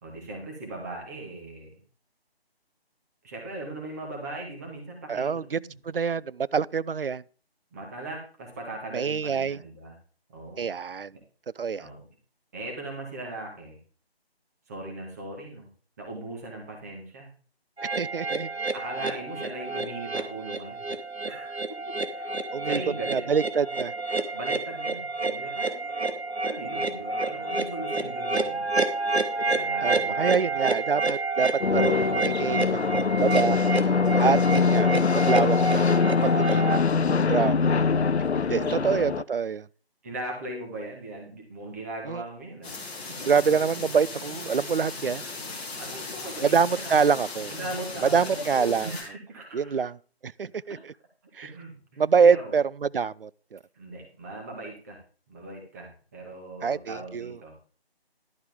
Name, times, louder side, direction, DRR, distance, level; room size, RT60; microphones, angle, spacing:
voice 1, 0.0-1.8 3.2-5.8 7.7-10.0 10.3-10.7 11.8-12.1 12.5-13.8 14.7-15.7 16.0-17.3 18.7-20.9 21.3-21.8 22.1-22.3 22.6-23.2 24.3-28.7 29.4-30.6 38.4-38.9 40.0-43.1 45.8-47.0 47.5-49.8 51.4-52.5 53.7-55.0 55.3-57.5, right 2 dB, 15° right, 1.7 m, -39 dB
voice 2, 5.1-5.6 5.8-7.2 8.9-9.6 10.6-11.1 11.6-11.9 18.0-18.5 22.5-22.8 23.1-23.9 29.8-33.6 34.2-37.8 38.4-39.7 42.1-42.2 43.2-45.3 46.4-47.6 48.1-48.9 49.5-50.0 50.2-50.9 51.3-51.5 52.0-53.6 56.6-57.4, right 6 dB, 60° right, 0.4 m, -26 dB
sound 1, 17.8-36.8, right 3 dB, 80° right, 1.4 m, -29 dB
sound 2, 31.6-39.2, left 5 dB, 90° left, 0.5 m, -23 dB
sound 3, 42.6-49.0, left 3 dB, 10° left, 1.3 m, -37 dB
11.5 x 8.2 x 3.6 m
figure-of-eight pair, 155°, 31 cm